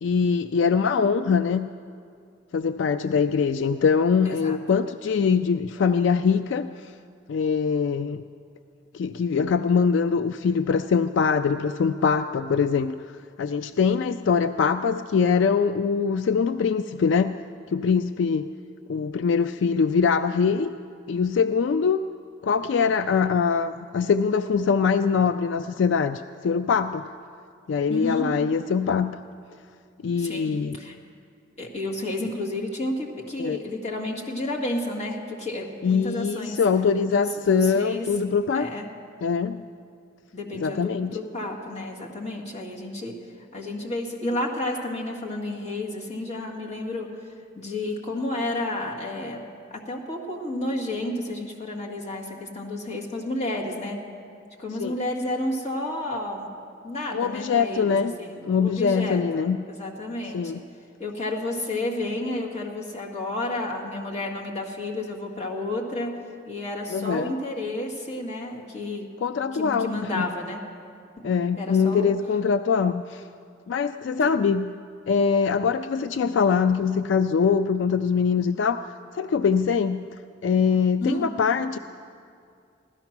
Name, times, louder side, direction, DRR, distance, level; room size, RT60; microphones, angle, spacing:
voice 1, 0.0-1.7 2.5-6.9 7.3-8.2 8.9-12.9 13.4-17.4 17.7-18.5 18.9-20.7 21.1-22.0 22.4-27.1 27.7-29.2 30.0-30.8 33.4-33.6 35.8-38.7 39.2-39.7 40.5-41.2 54.8-54.9 57.1-58.1 58.5-59.6 60.3-60.6 66.9-67.3 69.2-69.9 70.1-70.3 71.2-73.2 73.7-74.8 75.1-80.1 80.4-81.8, left 6 dB, 75° left, 11 dB, 0.3 m, -23 dB
voice 2, 4.2-4.6 27.9-28.3 30.2-31.0 31.6-36.6 37.0-38.1 38.5-38.9 40.3-43.2 43.5-47.1 47.5-54.0 54.6-56.5 56.8-60.5 61.0-66.2 66.5-69.1 69.5-70.6 71.2-71.3 71.6-72.1 74.2-74.3 81.0-81.3, left 1 dB, 35° left, -1 dB, 1.9 m, -31 dB
15.5 x 13.0 x 5.9 m, 2.3 s
head